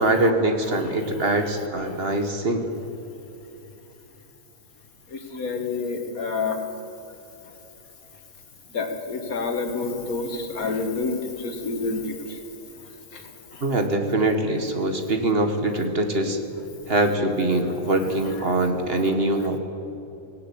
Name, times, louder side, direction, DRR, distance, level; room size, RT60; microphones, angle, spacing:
voice 1, 0.0-2.7 13.6-16.4 16.9-19.6, right 2 dB, 45° right, 5 dB, 1.9 m, -23 dB
voice 2, 0.6-1.4 1.8-2.0 5.1-6.6 8.7-12.4 13.1-13.6 18.0-18.4 19.0-19.1, left 4 dB, 85° left, 5 dB, 2.3 m, -29 dB
18.5 x 18.0 x 8.6 m, 2.9 s
omnidirectional pair, 1.5 m